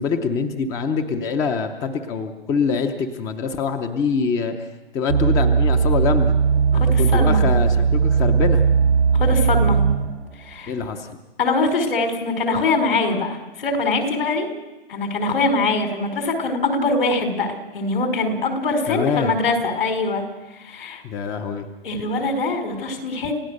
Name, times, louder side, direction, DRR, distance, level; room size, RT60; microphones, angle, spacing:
voice 1, 0.0-4.7 4.9-6.3 6.7-8.7 10.7-11.2 18.9-19.3 21.0-21.7, left 5 dB, 10° left, 8 dB, 0.7 m, -24 dB
sound 1, 5.1-10.2 10.8-10.9, right 6 dB, 80° right, 1.4 m, -18 dB
voice 2, 6.7-7.4 9.1-9.8 10.4-10.7 11.4-14.5 14.9-20.2 20.6-21.0 21.8-23.3, left 3 dB, 65° left, 5 dB, 5.1 m, -23 dB
29.5 x 16.0 x 6.6 m, 1.2 s
hypercardioid pair, 155°, 30 cm